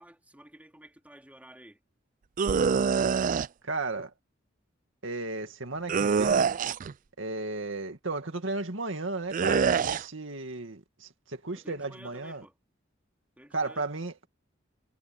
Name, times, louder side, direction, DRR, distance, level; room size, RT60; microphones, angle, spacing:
voice 1, 0.0-1.8 11.5-12.5 13.4-13.9, right 1 dB, 10° right, 3.1 m, -52 dB
sound 1, 2.4-3.5 5.9-6.9 9.3-10.0, right 6 dB, 40° right, 0.4 m, -25 dB
voice 2, 3.6-4.1 5.0-6.6 7.2-12.4 13.5-14.3, right 3 dB, 70° right, 2.3 m, -34 dB
head